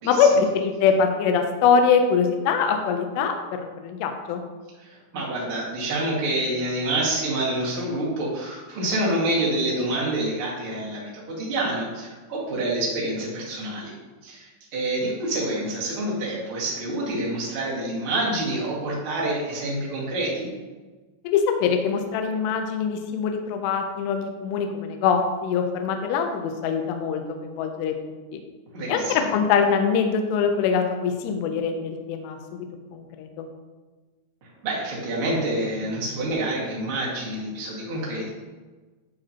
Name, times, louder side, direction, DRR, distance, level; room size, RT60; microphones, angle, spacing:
voice 1, 0.0-4.4 21.2-28.4 28.9-33.5, left 6 dB, 85° left, 5 dB, 2.4 m, -23 dB
voice 2, 4.8-13.9 14.2-20.5 28.7-29.3 34.6-38.3, right 1 dB, 55° right, -6 dB, 1.5 m, -27 dB
11.5 x 5.0 x 2.9 m, 1.3 s
omnidirectional pair, 5.8 m